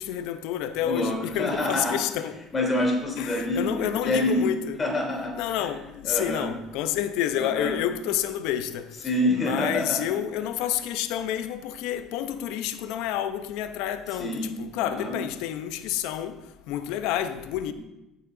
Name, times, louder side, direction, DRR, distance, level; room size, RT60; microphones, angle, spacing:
voice 1, 0.0-2.4 3.2-4.8 5.3-8.8 9.3-16.4 16.7-17.7, left 11 dB, 75° left, 0.8 m, -29 dB
voice 2, 0.8-2.0 2.5-4.5 4.8-5.7 6.0-6.5 7.4-7.8 9.0-10.2 14.2-14.5 14.8-15.2 17.7-17.8, left 1 dB, 25° left, 3.2 m, -27 dB
15.5 x 6.6 x 3.9 m
supercardioid pair, 85°, 0 cm